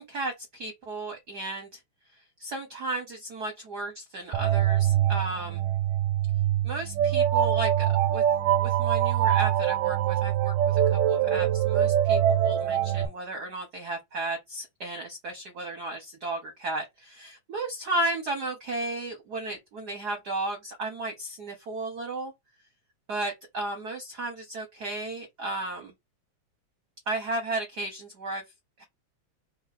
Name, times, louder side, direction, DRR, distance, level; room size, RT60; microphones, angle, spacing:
voice 1, 0.0-1.8 2.4-5.6 6.6-8.2 8.6-22.3 23.1-25.9 27.1-28.4 28.8-28.9, right 2 dB, 55° right, 1.1 m, -34 dB
sound 1, 4.3-13.1, right 11 dB, 80° right, 1.8 m, -24 dB
4.6 x 2.4 x 4.1 m
omnidirectional pair, 3.3 m